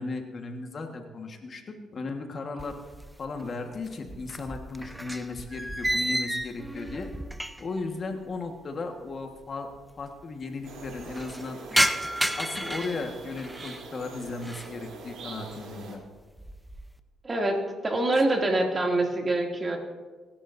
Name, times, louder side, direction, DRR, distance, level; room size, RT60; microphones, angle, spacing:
voice 1, 0.0-2.8 3.2-7.1 7.6-9.7 10.0-11.6 12.4-16.0, left 3 dB, 45° left, 4 dB, 1.5 m, -36 dB
sound 1, 2.6-3.5 3.7-7.8 8.1-8.2 9.1-9.2 9.4-9.5 9.7-10.2 10.6-13.8 14.3-14.8 15.2-15.6 16.0-16.9, equal, 5° right, 0.7 m, -32 dB
sound 2, 10.6-16.0, right 4 dB, 70° right, 3.3 m, -43 dB
voice 2, 17.2-19.8, right 2 dB, 30° right, 1 dB, 2.5 m, -25 dB
25.0 x 11.5 x 2.7 m, 1.4 s
cardioid pair, 90°, 0 cm